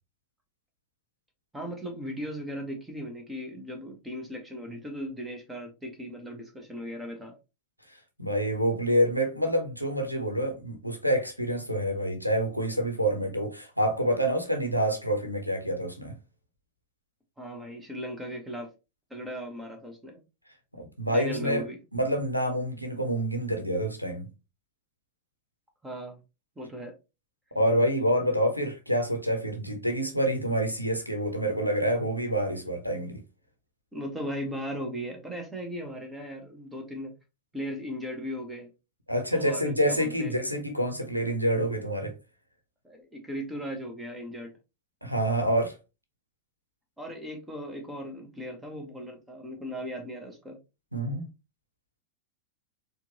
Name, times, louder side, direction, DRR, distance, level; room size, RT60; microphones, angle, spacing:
voice 1, 1.5-7.3 17.4-18.7 19.1-20.2 21.1-21.8 25.8-26.2 26.6-26.9 33.9-37.1 37.5-38.7 39.3-40.3 42.8-44.5 47.0-50.6, equal, 10° right, 1.2 m, -37 dB
voice 2, 8.2-16.2 20.7-21.6 21.9-24.3 27.5-33.2 39.1-42.1 45.0-45.8 50.9-51.3, equal, 90° left, 0.8 m, -27 dB
4.3 x 2.5 x 2.9 m
figure-of-eight pair, 90°, 0 cm